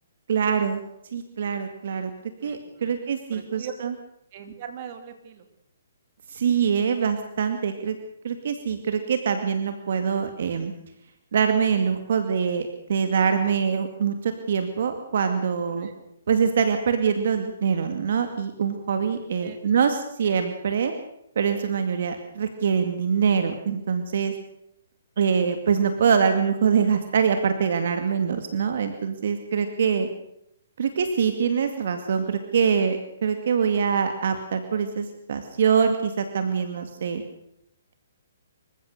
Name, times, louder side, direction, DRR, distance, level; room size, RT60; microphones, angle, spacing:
voice 1, 0.3-0.8 1.1-2.1 2.4-3.9 6.3-8.0 8.2-10.7 11.3-15.9 16.3-20.9 21.4-24.3 25.2-30.1 30.8-37.2, right 6 dB, 60° right, 7 dB, 2.3 m, -24 dB
voice 2, 2.4-3.0 3.3-3.7 4.3-5.5 15.7-15.9 19.4-19.9 20.2-20.4, right 9 dB, 40° right, 6 dB, 3.2 m, -41 dB
26.5 x 15.5 x 6.7 m, 0.78 s
hypercardioid pair, 150°, 0 cm